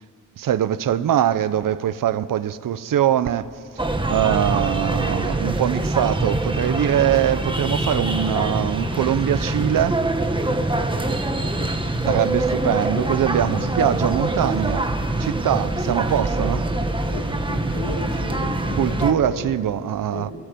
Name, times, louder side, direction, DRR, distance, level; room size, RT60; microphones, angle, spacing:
voice 1, 0.4-10.0 12.1-14.9 15.2-16.7 18.8-20.3, right 10 dB, 80° right, 0.9 m, -22 dB
sound 1, 3.8-19.1, right 2 dB, 15° right, 1.6 m, -24 dB
voice 2, 10.7-11.7 13.5-13.9 15.7-15.8 17.1-19.5 20.1-20.3, left 3 dB, 90° left, 5.1 m, -34 dB
29.5 x 20.5 x 9.2 m
wide cardioid pair, 120°, 32 cm